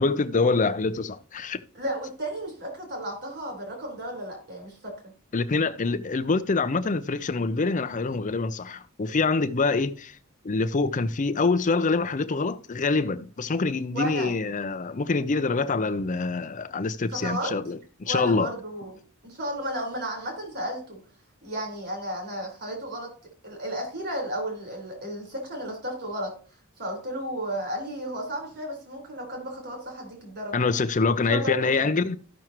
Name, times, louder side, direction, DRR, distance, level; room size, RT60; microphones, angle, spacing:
voice 1, 0.0-1.6 5.3-10.2 10.4-18.5 30.5-32.2, left 3 dB, 35° left, 0.5 m, -25 dB
voice 2, 1.7-4.9 13.9-14.3 17.2-17.5 18.0-19.0 19.2-21.0 21.4-23.1 23.4-26.3 26.8-30.8 31.3-31.9, right 1 dB, 50° right, 4.2 m, -33 dB
13.5 x 6.1 x 3.0 m
head